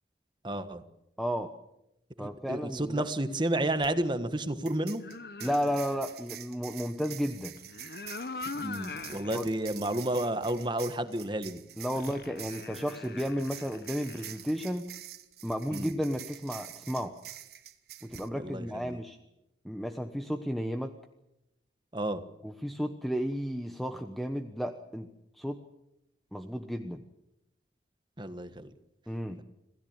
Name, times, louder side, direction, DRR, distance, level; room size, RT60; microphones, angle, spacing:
voice 1, 0.4-0.8 2.2-5.0 8.6-11.6 15.7-15.9 18.3-19.0 21.9-22.2 28.2-28.7, right 1 dB, 25° right, 10 dB, 1.4 m, -31 dB
voice 2, 1.2-1.5 2.2-3.0 5.4-7.5 9.3-9.5 11.8-14.9 15.4-17.1 18.0-19.2 19.6-20.9 22.4-25.1 25.4-25.6 26.3-27.0 29.1-29.4, equal, ahead, 6 dB, 1.1 m, -33 dB
sound 1, 3.8-3.9 4.6-18.3, right 12 dB, 60° right, 1.6 m, -47 dB
sound 2, 5.0-6.1 7.6-9.4 9.9-10.0 11.9-14.5, left 3 dB, 55° left, 1.0 m, -42 dB
27.0 x 17.0 x 8.8 m, 0.87 s
head